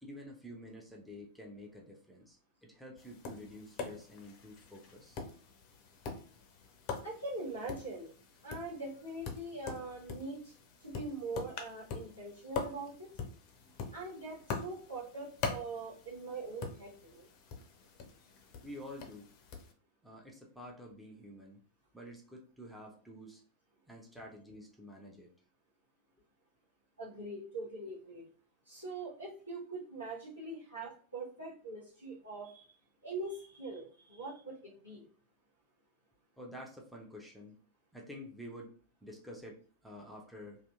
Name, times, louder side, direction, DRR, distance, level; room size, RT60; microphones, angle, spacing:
voice 1, 0.0-5.2 18.6-19.3 20.0-21.6 21.9-23.4 23.9-25.3 36.4-37.6 37.9-38.7 39.0-40.6, left 1 dB, ahead, -2 dB, 0.6 m, -49 dB
Tap, 3.0-19.7, left 5 dB, 40° left, 0.5 m, -44 dB
voice 2, 7.0-8.1 8.4-10.5 10.8-13.1 13.9-17.3 27.0-28.2 28.6-32.7 33.0-35.0, right 2 dB, 85° right, -10 dB, 1.0 m, -42 dB
2.7 x 2.4 x 2.3 m, 0.43 s
figure-of-eight pair, 90°, 0 cm